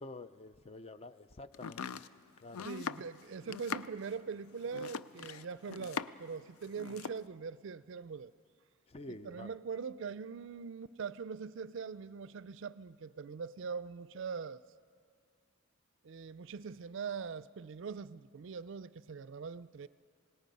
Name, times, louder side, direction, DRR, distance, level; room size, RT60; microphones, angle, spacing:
voice 1, 0.0-1.9 2.4-2.7 8.9-9.5, left 2 dB, 30° left, 0.4 m, -48 dB
Domestic sounds home sounds, 1.5-6.3 6.6-7.2, left 6 dB, 90° left, 0.4 m, -42 dB
voice 2, 2.6-8.3 9.2-14.6 16.0-19.9, right 5 dB, 60° right, 0.4 m, -42 dB
27.0 x 18.0 x 5.4 m
head